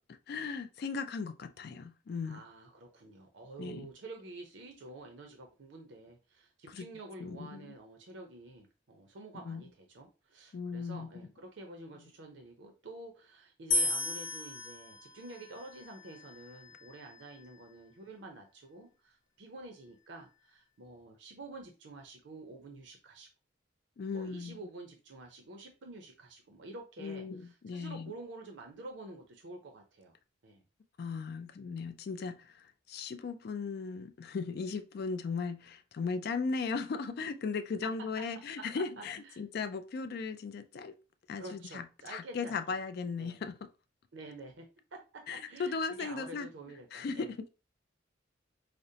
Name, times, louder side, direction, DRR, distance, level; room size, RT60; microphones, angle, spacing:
voice 1, 0.3-2.4 3.6-3.9 6.7-6.8 7.2-7.7 9.5-9.6 10.5-11.1 24.0-24.6 27.0-28.1 31.0-40.9 41.3-41.8 42.1-43.6 45.3-46.5 46.9-47.5, left 4 dB, 50° left, 0.3 m, -37 dB
voice 2, 2.2-23.3 24.1-30.2 30.4-30.6 37.8-37.9 38.3-39.4 41.4-42.8 43.2-43.4 44.1-47.3, right 2 dB, 60° right, 0.6 m, -49 dB
sound 1, 13.7-16.9, left 2 dB, 80° left, 0.8 m, -35 dB
5.0 x 2.0 x 2.7 m
head